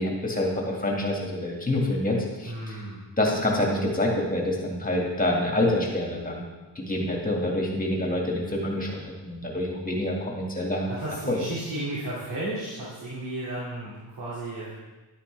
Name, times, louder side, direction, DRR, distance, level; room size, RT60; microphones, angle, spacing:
voice 1, 0.0-2.7 3.2-6.4 6.8-8.9 9.2-10.8 11.3-11.4, left 1 dB, 20° left, -2 dB, 2.0 m, -26 dB
voice 2, 2.4-3.0 10.5-14.8, right 1 dB, 65° right, -9 dB, 2.8 m, -34 dB
11.0 x 9.9 x 3.4 m, 1.2 s
wide cardioid pair, 160°, 44 cm